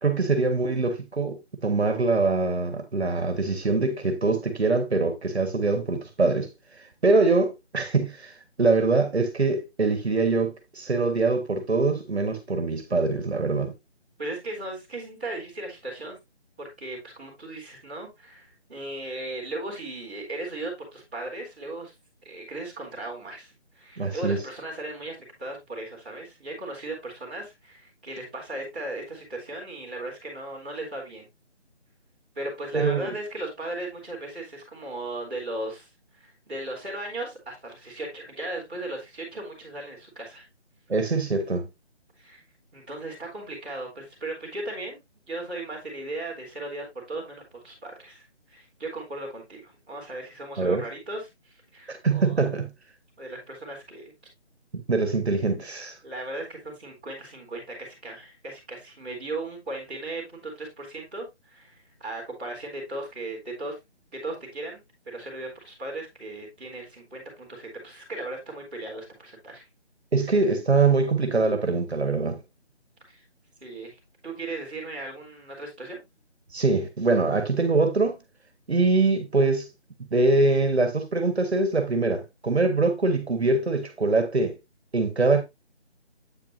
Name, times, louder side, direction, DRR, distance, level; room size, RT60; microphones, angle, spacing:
voice 1, 0.0-6.5 7.0-8.3 8.6-13.7 23.9-24.4 32.7-33.1 40.9-41.7 50.6-50.8 51.9-52.7 54.7-56.0 70.1-72.4 76.5-78.2 78.7-79.7 80.1-84.6 84.9-85.4, right 3 dB, 65° right, 1.5 m, -23 dB
voice 2, 14.2-16.2 16.6-21.9 22.2-31.3 32.3-35.9 36.1-40.4 42.2-42.4 42.7-45.0 45.3-48.2 48.5-52.3 53.2-54.1 56.0-63.8 64.2-64.8 65.1-69.6 73.1-73.2 73.6-74.0 74.2-76.0, right 2 dB, 10° right, 2.4 m, -37 dB
8.5 x 5.8 x 2.6 m
figure-of-eight pair, 180°, 34 cm